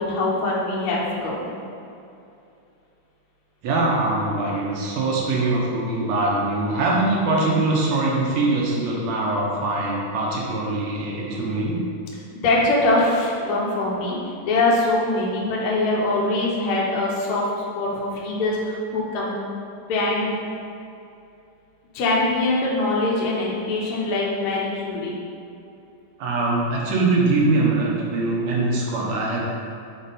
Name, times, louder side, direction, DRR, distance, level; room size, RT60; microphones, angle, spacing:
voice 1, 0.0-1.5 12.3-14.2 14.4-17.4 17.7-19.3 19.9-20.4 21.9-25.1, left 2 dB, 75° left, -4 dB, 1.3 m, -23 dB
voice 2, 3.6-11.8 26.2-29.4, right 2 dB, 70° right, -3 dB, 1.8 m, -22 dB
6.1 x 3.9 x 4.0 m, 2.6 s
omnidirectional pair, 3.9 m